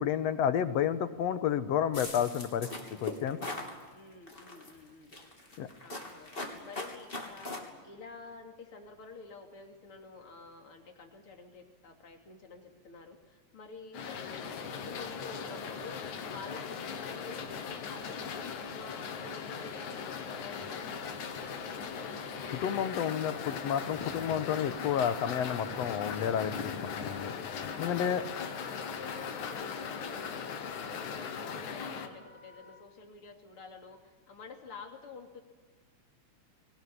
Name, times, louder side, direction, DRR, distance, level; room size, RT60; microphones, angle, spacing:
voice 1, 0.0-2.7 3.0-3.4 5.6-5.7 22.5-27.3 27.8-28.2, left 9 dB, 70° left, 12 dB, 2.0 m, -31 dB
sound 1, 1.9-3.7 4.3-4.7 5.1-7.6, left 2 dB, 20° left, 3.4 m, -40 dB
voice 2, 3.9-5.2 5.8-21.7 28.1-35.4, left 4 dB, 50° left, 3 dB, 3.6 m, -49 dB
sound 2, 13.9-32.1, left 6 dB, 85° left, 3.2 m, -39 dB
Wind instrument woodwind instrument, 20.5-32.8, left 1 dB, 55° right, 8.1 m, -55 dB
22.0 x 19.5 x 9.8 m, 1.4 s
omnidirectional pair, 3.3 m